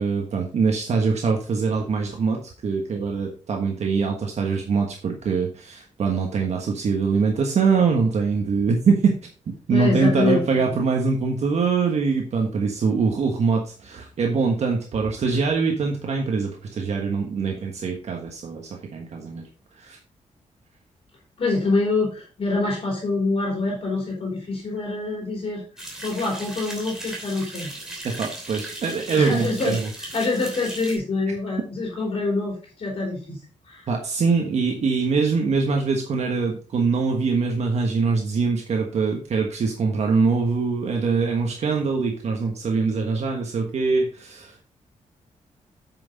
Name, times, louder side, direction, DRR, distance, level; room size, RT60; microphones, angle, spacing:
voice 1, 0.0-9.1 9.5-19.5 19.7-20.0 28.0-29.9 33.9-44.6, right 4 dB, 60° right, 1 dB, 1.3 m, -23 dB
voice 2, 9.7-10.8 21.4-25.6 26.0-27.7 29.1-29.7 30.0-33.4 33.7-33.8, left 3 dB, 45° left, -2 dB, 3.3 m, -25 dB
sound 1, 25.8-31.0, right 1 dB, 5° right, 2.8 m, -37 dB
8.7 x 6.1 x 4.0 m, 0.37 s
wide cardioid pair, 165°, 13 cm